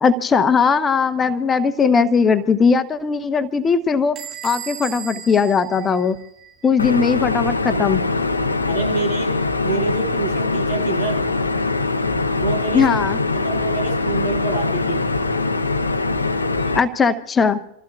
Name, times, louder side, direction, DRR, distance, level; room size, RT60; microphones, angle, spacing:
voice 1, 0.0-4.2 4.4-6.2 6.6-8.0 12.7-13.2 16.7-17.6, left 5 dB, 20° left, 11 dB, 1.0 m, -18 dB
Bell / Door, 4.2-6.7, right 9 dB, 30° right, 6.2 m, -36 dB
sound 1, 6.8-16.8, left 3 dB, 80° left, 0.9 m, -22 dB
voice 2, 8.7-9.3 9.6-11.3 12.3-12.8 13.3-15.0, right 4 dB, 75° right, -2 dB, 7.8 m, -26 dB
28.0 x 15.0 x 2.5 m, 0.79 s
figure-of-eight pair, 90°, 0 cm